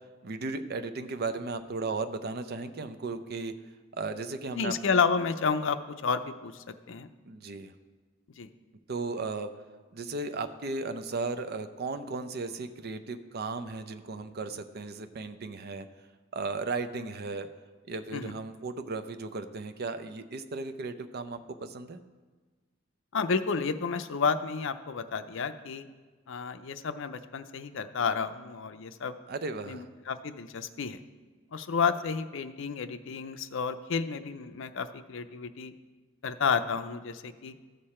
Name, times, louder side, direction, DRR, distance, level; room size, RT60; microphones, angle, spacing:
voice 1, 0.2-3.6 4.0-4.8 7.2-7.7 8.9-9.5 9.9-15.9 16.3-17.5 17.9-22.0 29.3-29.9, right 3 dB, 50° right, 9 dB, 0.6 m, -35 dB
voice 2, 4.5-7.1 8.4-8.5 18.1-18.3 23.1-25.9 26.3-29.2 29.7-31.0 31.5-35.7 36.2-37.5, left 5 dB, 70° left, 10 dB, 0.5 m, -31 dB
14.0 x 6.6 x 4.3 m, 1.4 s
head